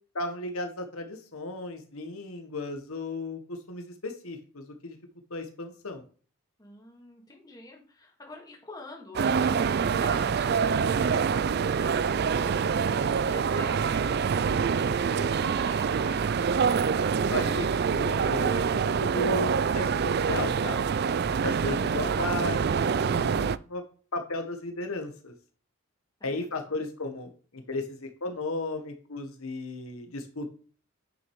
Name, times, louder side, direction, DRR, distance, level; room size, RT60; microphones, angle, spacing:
voice 1, 0.1-5.0 5.3-6.0 17.3-20.8 21.4-23.8 24.1-25.3 26.2-30.5, left 2 dB, 75° left, 6 dB, 1.4 m, -35 dB
voice 2, 6.6-16.4 26.2-26.8, left 1 dB, 15° left, 0 dB, 2.3 m, -46 dB
sound 1, 9.1-23.6, right 6 dB, 45° right, 0.3 m, -26 dB
9.5 x 6.4 x 4.7 m, 0.40 s
head